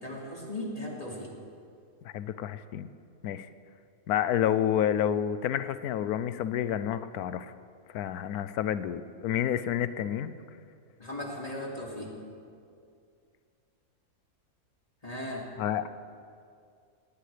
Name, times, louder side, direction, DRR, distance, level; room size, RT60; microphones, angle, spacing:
voice 1, 0.0-1.3 11.0-12.1 15.0-15.5, left 1 dB, 25° left, -2 dB, 2.3 m, -37 dB
voice 2, 2.1-2.9 3.2-3.5 4.1-7.5 7.9-10.3 15.6-15.9, left 10 dB, 85° left, 13 dB, 1.1 m, -29 dB
19.0 x 18.5 x 3.4 m, 2.3 s
omnidirectional pair, 1.6 m